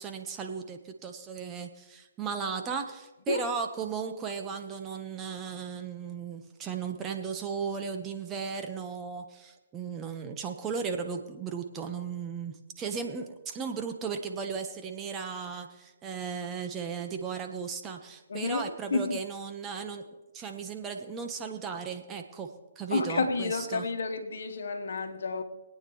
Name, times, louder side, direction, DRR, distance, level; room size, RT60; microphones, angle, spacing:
voice 1, 0.0-20.0 20.3-22.5 22.8-23.8, right 6 dB, 20° right, 1.1 m, -36 dB
voice 2, 18.3-18.6 18.9-19.2 22.9-25.4, left 4 dB, 75° left, 1.2 m, -30 dB
23.5 x 9.0 x 3.2 m
hypercardioid pair, 140°, 0 cm